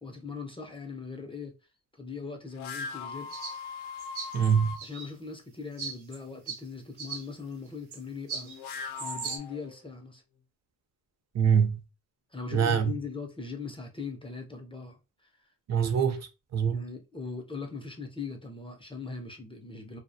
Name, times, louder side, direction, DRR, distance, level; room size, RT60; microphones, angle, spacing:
voice 1, 0.0-1.5 1.9-3.3 4.8-8.5 9.0-10.2 12.3-15.3 16.7-20.0, left 4 dB, 15° left, 0.4 m, -40 dB
sound 1, 2.5-4.8 8.4-10.1, left 5 dB, 80° left, 0.5 m, -40 dB
sound 2, 3.3-3.6 4.0-5.1 5.8-6.2 6.5-6.6 7.0-7.2 7.9-8.0 8.3-8.6 9.0-9.4, right 5 dB, 80° right, 0.7 m, -38 dB
voice 2, 4.3-4.8 11.3-11.8 12.5-12.9 15.7-16.8, right 7 dB, 45° right, 0.5 m, -24 dB
2.3 x 2.0 x 2.6 m
cardioid pair, 95°, 38 cm